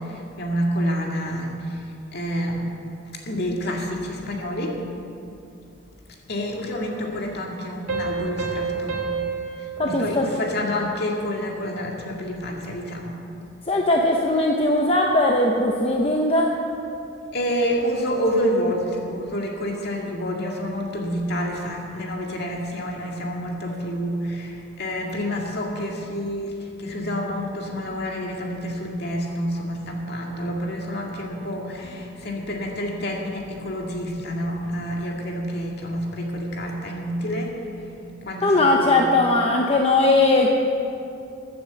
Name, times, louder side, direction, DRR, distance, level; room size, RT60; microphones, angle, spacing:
voice 1, 0.0-2.6 3.3-4.8 6.3-9.0 9.6-13.2 17.3-37.5 38.2-39.1, equal, 50° left, 0 dB, 2.1 m, -28 dB
sound 1, 7.9-11.2, right 5 dB, 80° right, 2.2 m, -30 dB
voice 2, 9.8-10.3 13.7-16.5 38.4-40.5, left 2 dB, 25° left, 0 dB, 0.8 m, -19 dB
15.5 x 9.3 x 7.0 m, 2.6 s
head